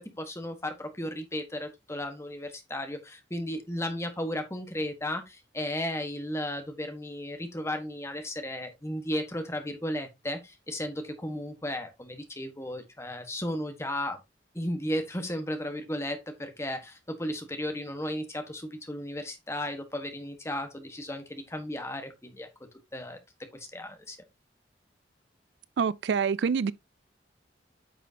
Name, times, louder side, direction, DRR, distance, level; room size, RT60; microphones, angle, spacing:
voice 1, 0.0-14.2 14.5-22.5 22.9-23.2 23.5-24.2, left 1 dB, 15° left, 1.4 m, -34 dB
voice 2, 25.8-26.7, right 6 dB, 70° right, 0.4 m, -26 dB
9.2 x 6.1 x 2.8 m
head